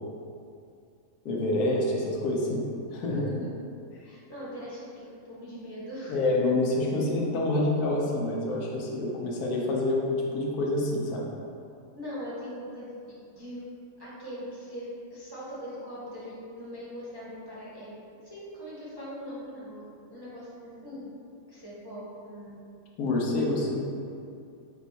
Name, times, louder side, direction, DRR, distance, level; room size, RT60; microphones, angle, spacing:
voice 1, 1.2-2.6 2.9-3.2 6.1-11.3 23.0-23.8, left 2 dB, 80° left, -2 dB, 1.2 m, -27 dB
voice 2, 3.0-3.6 4.0-6.3 11.9-13.0 13.3-13.6 14.0-19.8 20.1-21.1 21.5-22.6, equal, 20° right, -10 dB, 0.6 m, -41 dB
5.2 x 2.3 x 4.0 m, 2.5 s
omnidirectional pair, 1.6 m